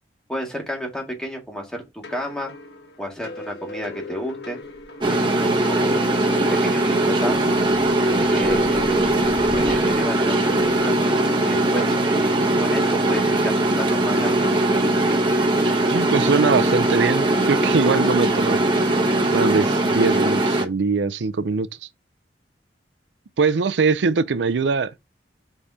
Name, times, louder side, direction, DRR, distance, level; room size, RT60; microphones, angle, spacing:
voice 1, 0.3-2.5 3.0-4.6 5.1-6.0 6.5-7.6 8.3-10.9 11.4-14.5, equal, 5° left, 2.0 m, -32 dB
sound 1, 2.0-11.6, left 3 dB, 70° left, 1.3 m, -38 dB
sound 2, 4.6-5.2 5.5-6.0 6.4-6.7 7.0-11.4 12.8-12.9 14.1-14.9 15.2-15.4 16.0-16.1 16.3-16.4 16.8-17.0 17.3-17.4 18.9-19.2, equal, 20° left, 2.7 m, -42 dB
sound 3, 5.0-20.6, right 1 dB, 25° right, 1.0 m, -20 dB
voice 2, 15.9-18.6 19.3-21.7 23.4-24.9, right 4 dB, 90° right, 0.5 m, -22 dB
5.3 x 4.2 x 4.9 m
head